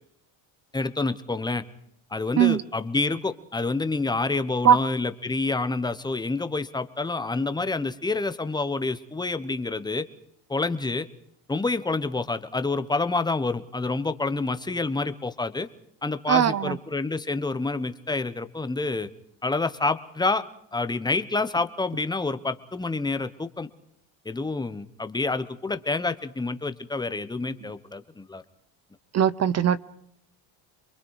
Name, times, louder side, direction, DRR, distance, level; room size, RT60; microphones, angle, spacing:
voice 1, 0.7-1.6 2.1-10.1 10.5-11.1 11.5-15.7 16.0-19.1 19.4-20.4 20.7-23.7 24.2-28.4, left 3 dB, 10° left, 1.2 m, -28 dB
voice 2, 16.3-16.8 29.1-29.8, right 9 dB, 35° right, 0.8 m, -19 dB
28.0 x 22.5 x 4.9 m
cardioid pair, 125°, 47 cm